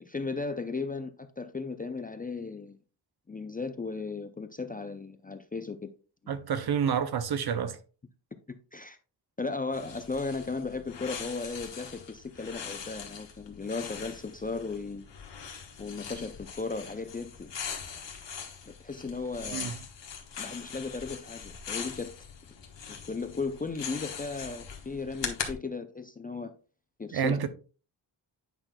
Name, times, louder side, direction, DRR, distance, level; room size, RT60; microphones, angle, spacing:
voice 1, 0.0-2.8 3.3-5.9 8.7-9.0 9.4-15.1 15.8-17.5 18.8-19.7 20.4-22.1 22.9-26.5 27.0-27.4, left 4 dB, 20° left, 0.4 m, -36 dB
voice 2, 6.3-7.8 19.5-19.8 27.1-27.5, right 7 dB, 55° right, 0.7 m, -29 dB
sound 1, 9.7-25.5, left 7 dB, 70° left, 1.3 m, -41 dB
9.0 x 5.7 x 2.3 m
wide cardioid pair, 140°, 45 cm